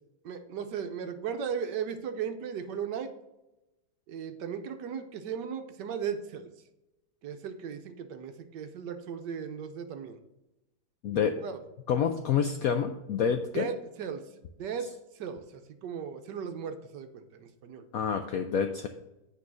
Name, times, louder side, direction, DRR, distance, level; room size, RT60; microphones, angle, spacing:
voice 1, 0.2-3.1 4.1-6.5 7.2-10.2 11.1-11.6 13.5-14.2 14.6-17.8, right 7 dB, 70° right, 8 dB, 1.3 m, -36 dB
voice 2, 11.0-11.4 11.9-13.7 17.9-18.9, left 7 dB, 80° left, 7 dB, 0.8 m, -28 dB
8.3 x 4.0 x 6.1 m, 0.95 s
omnidirectional pair, 2.1 m